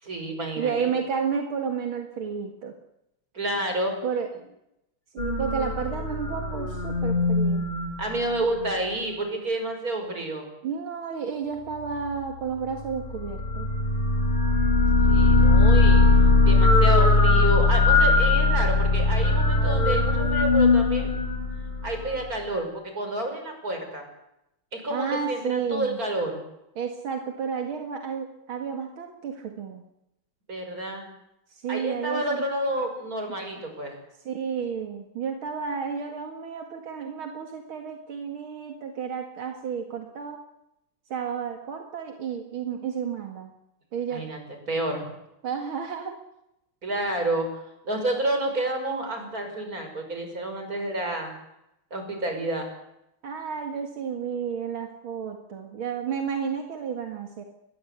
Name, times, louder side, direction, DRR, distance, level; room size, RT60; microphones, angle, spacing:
voice 1, 0.0-0.9 3.3-4.0 8.0-10.5 15.1-16.0 16.5-21.1 21.8-24.1 24.7-26.4 30.5-31.1 31.7-34.0 44.1-44.4 44.7-45.1 46.8-51.3 51.9-52.7, right 1 dB, 45° right, 5 dB, 6.2 m, -29 dB
voice 2, 0.6-2.7 4.0-4.3 5.1-7.7 10.6-13.7 24.9-26.0 26.8-29.8 31.5-32.4 34.2-40.4 41.1-43.5 43.9-44.3 45.4-46.2 53.2-57.4, right 6 dB, 80° right, 4 dB, 2.8 m, -31 dB
sound 1, 5.2-8.8 13.0-22.3, left 3 dB, 20° left, 5.2 m, -20 dB
24.5 x 21.0 x 8.2 m, 0.85 s
omnidirectional pair, 2.2 m